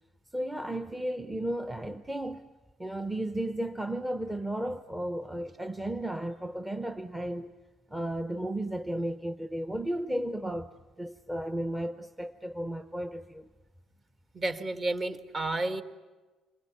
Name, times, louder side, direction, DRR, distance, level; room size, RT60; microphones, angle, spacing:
voice 1, 0.3-2.5 2.8-7.5 7.9-10.7 11.0-13.5, right 1 dB, 10° right, 0.8 m, -34 dB
voice 2, 14.3-15.8, right 2 dB, 30° right, 1.7 m, -31 dB
27.5 x 21.5 x 9.4 m
cardioid pair, 125°, 0 cm